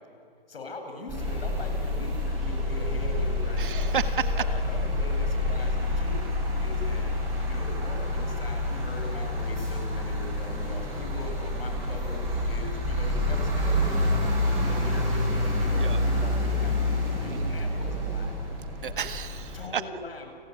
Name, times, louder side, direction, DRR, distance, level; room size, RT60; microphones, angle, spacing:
voice 1, 0.5-4.0 4.3-6.2 6.6-7.1 7.5-14.3 14.6-18.4 19.5-20.3, left 2 dB, 80° left, 5 dB, 7.4 m, -41 dB
sound 1, 1.1-19.6, left 1 dB, 10° right, 7.3 m, -28 dB
voice 2, 3.6-4.3 15.8-16.0 17.3-17.5 18.8-19.8, right 8 dB, 60° right, 10 dB, 1.7 m, -32 dB
29.5 x 20.5 x 9.7 m, 2.4 s
hypercardioid pair, 170°, 29 cm